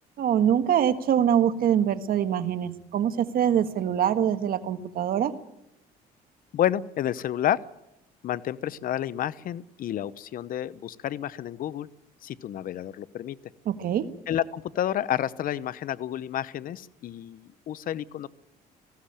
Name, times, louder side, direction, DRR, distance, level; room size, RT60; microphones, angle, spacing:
voice 1, 0.2-5.3 13.6-14.0, right 9 dB, 60° right, 9 dB, 1.6 m, -24 dB
voice 2, 6.5-7.6 8.2-11.9 12.2-13.4 14.3-18.3, left 11 dB, 55° left, 17 dB, 0.8 m, -30 dB
19.0 x 16.0 x 8.8 m, 0.87 s
cardioid pair, 110°, 17 cm